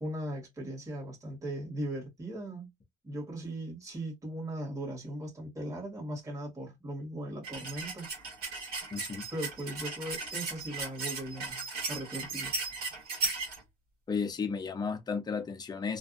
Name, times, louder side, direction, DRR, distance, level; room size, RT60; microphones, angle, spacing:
voice 1, 0.0-2.7 3.0-8.1 9.3-12.6, right 1 dB, 20° right, 1.3 m, -38 dB
sound 1, 7.4-13.6, right 3 dB, 65° right, 1.4 m, -37 dB
voice 2, 8.9-9.2 14.1-16.0, left 5 dB, 25° left, 0.5 m, -33 dB
2.6 x 2.2 x 2.4 m
cardioid pair, 110°, 17 cm